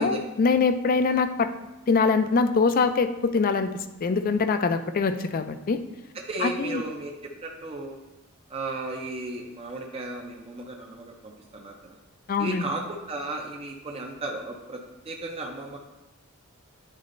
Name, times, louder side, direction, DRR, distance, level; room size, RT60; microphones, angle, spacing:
voice 1, 0.0-1.5 1.9-3.7 4.0-5.8 6.4-6.8 12.3-12.7, left 4 dB, 45° left, 10 dB, 0.4 m, -23 dB
voice 2, 6.3-7.1 7.4-8.0 8.5-12.0 12.4-15.8, right 2 dB, 30° right, 0 dB, 0.5 m, -35 dB
9.5 x 4.1 x 2.5 m, 1.0 s
head